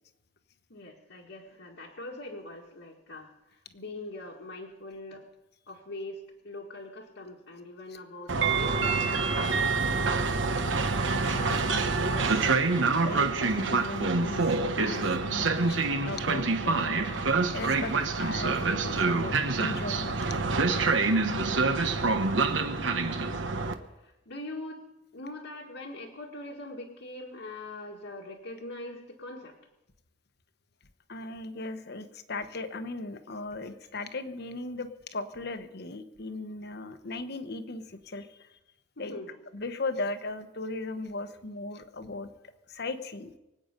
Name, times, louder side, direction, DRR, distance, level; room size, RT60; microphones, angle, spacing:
voice 1, 0.7-5.2 5.7-10.2 22.6-23.4 23.9-24.8 25.1-29.6 39.0-39.4, left 2 dB, 75° left, -2 dB, 1.9 m, -43 dB
Train, 8.3-23.7, right 3 dB, 70° right, 1.1 m, -26 dB
voice 2, 11.1-12.5 13.0-17.1 17.5-20.4 20.8-21.0 31.1-38.5 39.0-39.2 39.5-42.3 42.7-43.3, left 3 dB, 55° left, 9 dB, 1.1 m, -38 dB
24.5 x 8.7 x 5.3 m, 0.94 s
head